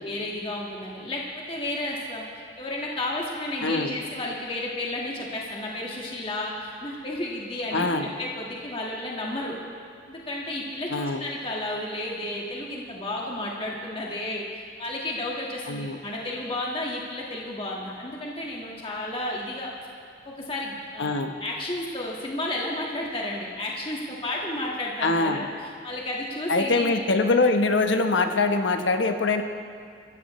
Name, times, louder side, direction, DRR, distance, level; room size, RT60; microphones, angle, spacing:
voice 1, 0.0-2.2 2.6-9.6 10.1-19.7 20.2-27.3, left 1 dB, 30° left, -3 dB, 1.7 m, -32 dB
voice 2, 3.6-3.9 7.7-8.1 10.9-11.3 15.7-16.0 21.0-21.3 25.0-25.5 26.5-29.4, left 3 dB, 75° left, 6 dB, 1.1 m, -23 dB
23.0 x 15.0 x 3.2 m, 2.2 s
head